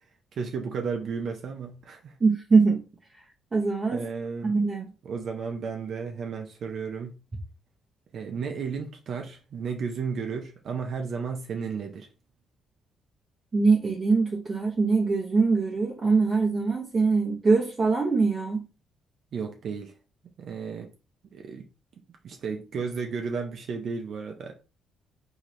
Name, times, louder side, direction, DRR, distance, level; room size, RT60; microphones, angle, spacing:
voice 1, 0.3-2.2 3.9-4.5 5.0-7.1 8.1-12.1 19.3-19.9 20.4-20.9 21.3-21.7 22.2-24.5, right 5 dB, 60° right, 0.6 m, -33 dB
voice 2, 2.2-2.8 3.5-4.0 4.4-4.9 13.5-18.6, right 4 dB, 35° right, 0.8 m, -23 dB
3.8 x 2.7 x 3.1 m
cardioid pair, 90°, 0 cm